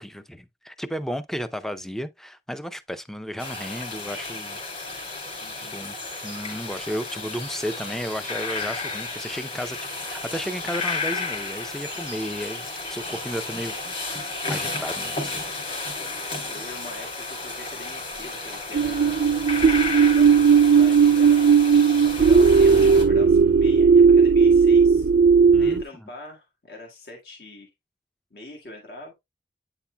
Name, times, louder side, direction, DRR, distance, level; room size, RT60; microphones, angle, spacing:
voice 1, 0.0-4.6 5.6-5.9 6.2-9.8 10.0-15.4 25.5-26.1, equal, ahead, 0.4 m, -33 dB
sound 1, 3.4-23.0, left 3 dB, 35° left, 3.6 m, -33 dB
voice 2, 5.4-5.8 16.5-19.3 20.0-21.5 22.0-25.1 25.6-27.7 28.3-29.1, left 2 dB, 60° left, 1.6 m, -42 dB
sound 2, 18.7-25.8, right 5 dB, 60° right, 0.3 m, -16 dB
9.0 x 5.7 x 2.2 m
head